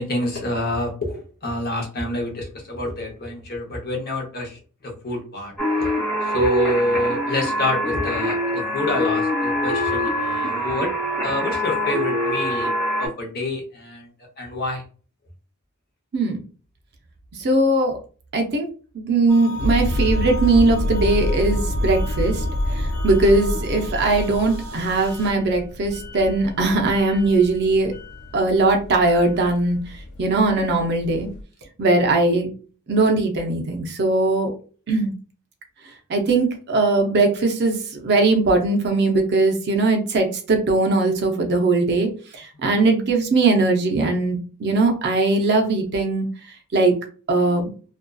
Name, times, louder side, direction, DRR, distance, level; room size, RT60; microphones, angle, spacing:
voice 1, 0.0-5.9 6.2-10.9 11.2-12.7 13.0-14.1 14.4-14.8 42.5-42.6, left 1 dB, 45° left, 0 dB, 0.7 m, -27 dB
sound 1, 5.6-13.1, equal, 5° left, 1.1 m, -24 dB
voice 2, 17.4-18.0 18.3-18.7 18.9-22.4 22.8-27.9 28.3-29.8 30.2-31.3 31.8-32.5 32.9-34.5 34.9-35.1 36.1-42.1 42.6-46.3 46.7-46.9 47.3-47.7, right 2 dB, 50° right, 3 dB, 0.5 m, -20 dB
sound 2, 19.3-25.3, left 2 dB, 90° right, 0.7 m, -36 dB
sound 3, 19.6-31.4, left 1 dB, 80° left, 0.4 m, -27 dB
2.6 x 2.3 x 2.2 m, 0.39 s
head